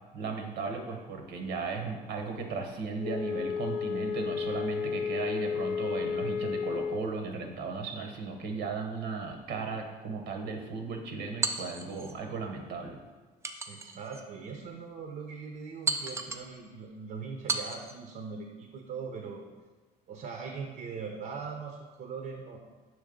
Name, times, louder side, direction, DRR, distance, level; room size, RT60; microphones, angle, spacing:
voice 1, 0.1-13.0, right 4 dB, 80° right, 3 dB, 1.0 m, -36 dB
Wind instrument woodwind instrument, 3.0-7.2, left 6 dB, 90° left, 0.4 m, -32 dB
sound 1, 11.4-12.2 13.4-14.3 14.8-14.9 15.9-16.5 17.5-18.0, right 3 dB, 15° right, 0.4 m, -34 dB
voice 2, 13.7-19.4 20.1-22.6, right 5 dB, 60° right, 3 dB, 0.7 m, -41 dB
6.4 x 3.1 x 5.1 m, 1.3 s
cardioid pair, 110°, 17 cm